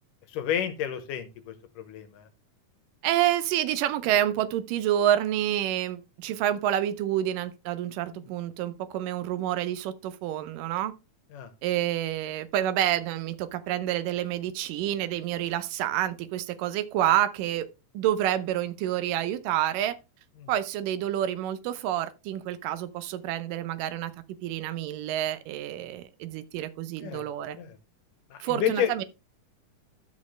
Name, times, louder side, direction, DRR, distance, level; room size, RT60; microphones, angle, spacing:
voice 1, 0.3-2.3 8.1-8.2 11.3-11.5 20.4-20.5 27.0-27.2 27.6-27.8 28.3-29.0, left 9 dB, 85° left, 2.7 m, -31 dB
voice 2, 3.0-10.9 11.6-17.7 17.9-20.0 20.5-24.1 24.4-27.6 28.4-29.0, right 12 dB, 90° right, 2.4 m, -28 dB
12.5 x 6.4 x 3.2 m
omnidirectional pair, 3.7 m